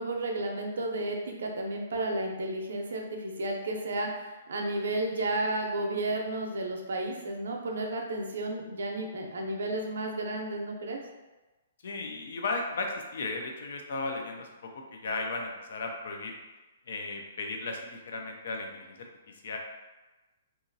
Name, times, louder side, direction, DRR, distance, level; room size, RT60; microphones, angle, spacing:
voice 1, 0.0-11.0, right 2 dB, 85° right, 2 dB, 0.5 m, -32 dB
voice 2, 11.8-16.4 16.9-19.1 19.4-19.6, left 3 dB, 60° left, 2 dB, 0.5 m, -35 dB
2.9 x 2.4 x 2.7 m, 1.1 s
hypercardioid pair, 170°, 0 cm